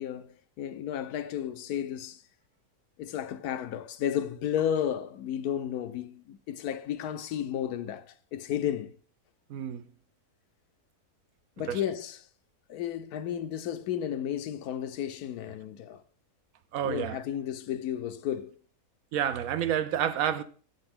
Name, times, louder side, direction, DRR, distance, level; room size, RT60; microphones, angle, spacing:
voice 1, 0.0-2.2 3.0-9.0 11.6-12.3 12.7-16.0 16.8-18.6, left 10 dB, 80° left, 1.1 m, -33 dB
voice 2, 9.5-9.8 11.7-11.8 16.7-17.2 19.1-20.4, right 9 dB, 70° right, 0.9 m, -29 dB
8.0 x 7.8 x 3.7 m
omnidirectional pair, 1.6 m